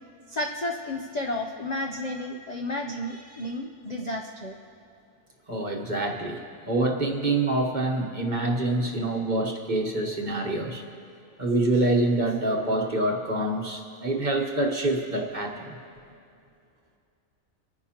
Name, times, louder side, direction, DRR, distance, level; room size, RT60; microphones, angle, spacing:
voice 1, 0.3-4.6, left 1 dB, 55° left, 2 dB, 0.4 m, -32 dB
voice 2, 5.5-10.8 11.4-15.8, right 2 dB, 35° right, 1 dB, 1.1 m, -26 dB
27.0 x 9.9 x 2.9 m, 2.5 s
omnidirectional pair, 1.6 m